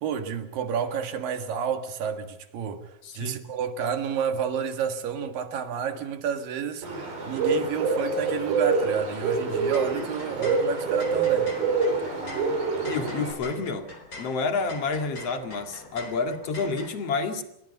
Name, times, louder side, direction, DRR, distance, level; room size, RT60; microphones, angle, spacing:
voice 1, 0.0-11.5, right 7 dB, 70° right, 3.6 m, -30 dB
voice 2, 3.0-3.4 12.8-13.9 14.2-17.4, left 4 dB, 45° left, 2.9 m, -29 dB
Bird, 6.8-13.3, right 4 dB, 90° right, 8.4 m, -26 dB
sound 1, 9.5-16.9, left 2 dB, 25° left, 4.0 m, -44 dB
29.0 x 23.0 x 5.5 m
omnidirectional pair, 4.2 m